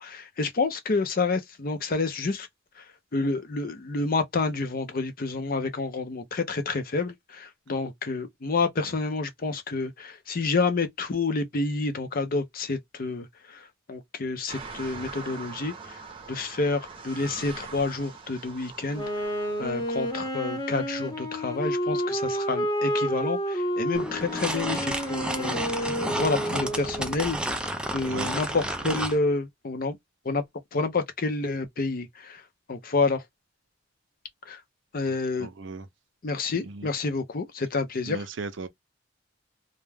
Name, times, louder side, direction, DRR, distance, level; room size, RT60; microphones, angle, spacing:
voice 1, 0.0-2.5 2.8-2.9 3.1-16.0 16.3-19.0 19.6-27.4 27.9-30.0 30.2-30.4 30.7-32.4 32.7-33.2 34.5-34.6 34.9-35.5 36.2-38.3, left 3 dB, 45° left, 0.6 m, -29 dB
sound 1, 14.5-20.2, right 4 dB, 25° right, 0.7 m, -42 dB
Wind instrument woodwind instrument, 18.9-27.2, equal, 20° left, 0.8 m, -30 dB
sound 2, 23.9-29.2, right 1 dB, 5° right, 0.3 m, -31 dB
voice 2, 35.4-35.8 36.6-36.9 38.1-38.7, right 3 dB, 65° right, 0.5 m, -36 dB
2.3 x 2.2 x 3.2 m
head